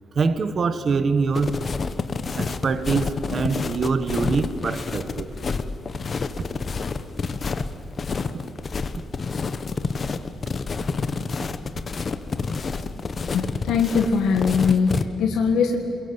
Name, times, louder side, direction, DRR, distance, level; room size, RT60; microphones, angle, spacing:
voice 1, 0.1-1.6 2.3-5.3, right 4 dB, 35° right, 11 dB, 1.2 m, -24 dB
sound 1, 1.3-15.0, left 4 dB, 30° left, 1.0 m, -28 dB
voice 2, 13.3-15.9, left 5 dB, 85° left, 3 dB, 1.7 m, -21 dB
28.0 x 22.5 x 8.1 m, 2.9 s
cardioid pair, 170°, 0 cm